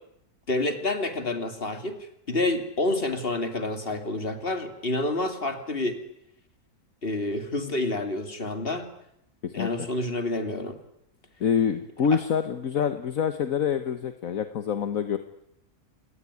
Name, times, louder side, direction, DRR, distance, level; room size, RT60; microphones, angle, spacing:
voice 1, 0.5-6.0 7.0-8.9 9.5-10.8 12.1-12.2, left 2 dB, 35° left, 8 dB, 3.0 m, -28 dB
voice 2, 11.4-15.2, left 7 dB, 65° left, 10 dB, 1.6 m, -26 dB
28.0 x 19.0 x 9.8 m, 0.77 s
omnidirectional pair, 1.6 m